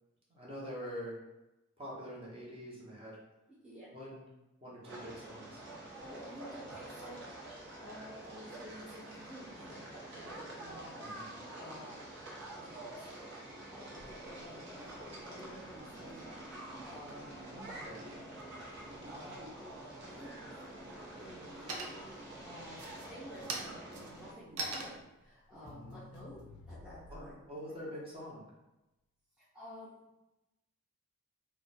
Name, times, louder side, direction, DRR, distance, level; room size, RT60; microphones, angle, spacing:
voice 1, 0.3-1.2 1.8-3.2 3.9-4.3 4.6-5.6 11.0-11.3 17.5-18.0 25.6-26.0 27.1-28.5, equal, 25° right, -5 dB, 0.8 m, -45 dB
sound 1, 4.8-24.3, right 1 dB, 55° right, 0.9 m, -47 dB
voice 2, 6.0-7.4 7.8-12.0 12.5-13.3 13.7-17.4 18.0-18.1 19.0-19.5 20.0-20.8 21.2-27.4 29.4-30.1, equal, 5° right, -10 dB, 0.5 m, -51 dB
Crackle, 14.0-27.5, left 2 dB, 85° left, 0.3 m, -57 dB
sound 2, 20.2-20.6 21.0-21.4 21.7-22.3 22.7-27.1, right 3 dB, 85° right, 0.5 m, -43 dB
2.5 x 2.2 x 4.0 m, 0.96 s
head